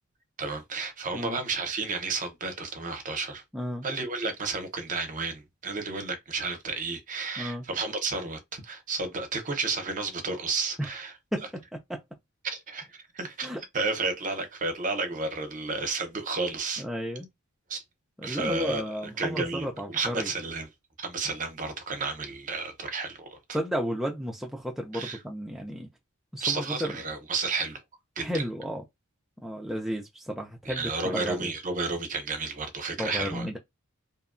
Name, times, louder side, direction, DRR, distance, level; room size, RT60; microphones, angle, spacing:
voice 1, 0.4-3.4 3.8-11.1 12.4-12.9 13.1-16.8 17.7-17.8 18.2-18.8 19.2-20.7 21.0-23.4 24.9-25.2 26.4-27.8 28.2-28.4 30.6-33.5, right 3 dB, 40° right, 0.7 m, -32 dB
voice 2, 3.5-3.9 7.4-7.6 10.8-10.9 11.3-11.5 11.9-12.0 13.4-13.6 16.8-17.3 18.2-20.3 23.5-25.9 26.3-26.9 28.2-28.8 29.4-31.5 33.0-33.6, equal, ahead, 0.3 m, -33 dB
2.7 x 2.2 x 2.4 m
head